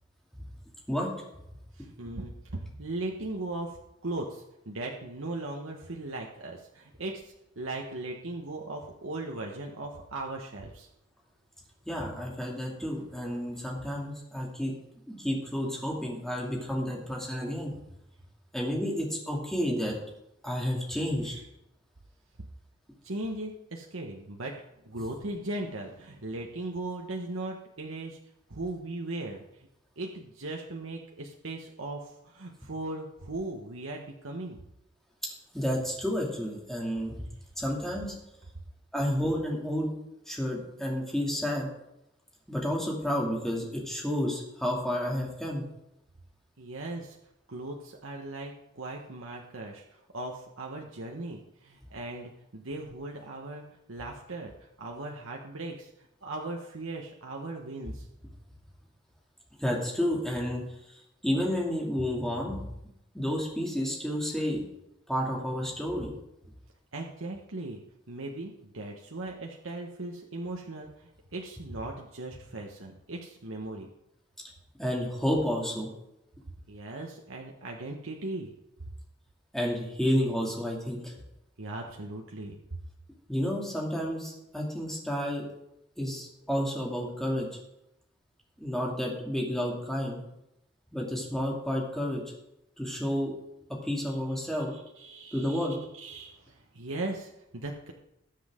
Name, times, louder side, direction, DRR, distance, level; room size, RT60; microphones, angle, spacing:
voice 1, 1.8-10.9 23.0-24.6 24.8-28.2 28.5-29.4 30.0-34.6 46.6-47.2 47.5-58.1 66.9-67.8 68.1-73.9 76.7-78.5 81.6-82.8 94.7-95.7 96.0-97.9, right 2 dB, 85° right, 0 dB, 1.3 m, -38 dB
voice 2, 11.8-14.7 15.1-17.7 18.5-19.9 20.4-21.4 35.5-37.3 37.6-38.1 38.9-39.9 40.3-41.7 42.5-45.6 59.6-62.6 63.1-64.7 65.1-66.1 74.8-75.9 79.5-81.1 83.3-85.4 86.0-87.6 88.6-90.2 90.9-92.2 92.8-93.3 93.8-94.7 95.3-95.8, equal, ahead, -3 dB, 2.6 m, -30 dB
20.0 x 7.7 x 3.8 m, 0.85 s
head